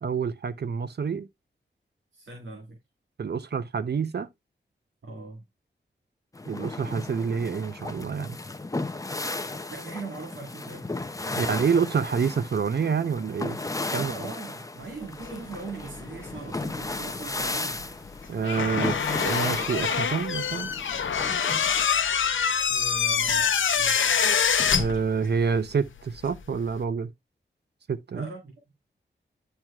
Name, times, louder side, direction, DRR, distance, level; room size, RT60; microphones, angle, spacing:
voice 1, 0.0-1.3 3.2-4.3 6.5-8.4 11.4-13.6 13.9-14.1 18.3-20.7 24.7-27.1 27.9-28.3, right 6 dB, 60° right, 0.6 m, -27 dB
voice 2, 2.1-2.8 5.0-5.5 9.7-10.9 11.2-11.8 13.9-17.8 22.7-24.3 28.1-28.5, right 3 dB, 85° right, 2.0 m, -40 dB
sound 1, 6.3-21.8, left 2 dB, 15° left, 0.5 m, -35 dB
sound 2, 15.2-17.0 17.3-25.6 25.9-26.8, left 7 dB, 90° left, 0.6 m, -25 dB
10.5 x 4.6 x 2.3 m
wide cardioid pair, 125°, 19 cm